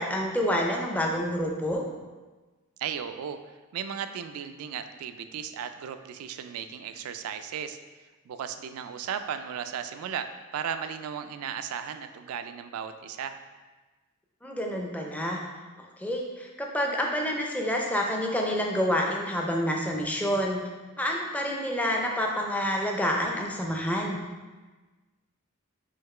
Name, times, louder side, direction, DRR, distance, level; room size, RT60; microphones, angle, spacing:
voice 1, 0.0-1.8 14.4-15.4 16.0-20.6 21.0-24.2, equal, 5° left, 0 dB, 0.4 m, -28 dB
voice 2, 2.8-3.4 3.7-7.8 8.3-13.4, right 8 dB, 75° right, 10 dB, 0.3 m, -35 dB
3.9 x 3.0 x 4.3 m, 1.3 s
head